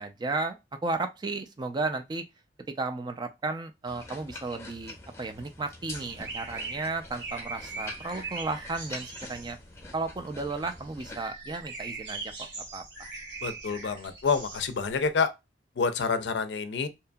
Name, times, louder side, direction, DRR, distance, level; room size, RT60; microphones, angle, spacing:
voice 1, 0.0-2.2 2.8-9.6 9.9-13.1, right 3 dB, 25° right, 0.3 m, -34 dB
sound 1, 3.9-11.2, left 2 dB, 15° left, 0.7 m, -46 dB
sound 2, 5.9-15.1, right 3 dB, 75° right, 1.6 m, -41 dB
voice 2, 13.4-15.3 15.8-16.9, left 5 dB, 75° left, 0.4 m, -28 dB
2.8 x 2.5 x 2.2 m
head